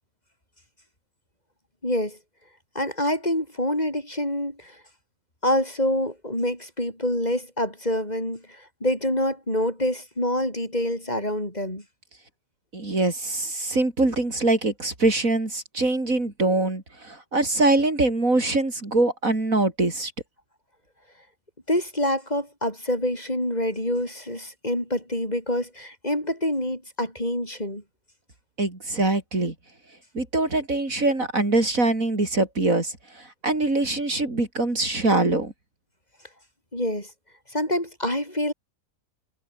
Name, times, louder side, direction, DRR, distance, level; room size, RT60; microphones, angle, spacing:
voice 1, 1.8-2.2 2.7-4.8 5.4-11.8 21.7-27.8 36.7-37.1 37.5-38.5, left 1 dB, 25° left, 6.4 m, -26 dB
voice 2, 12.7-20.1 28.6-29.5 30.1-35.5, right 2 dB, 55° right, 5.1 m, -23 dB
omnidirectional pair, 1.7 m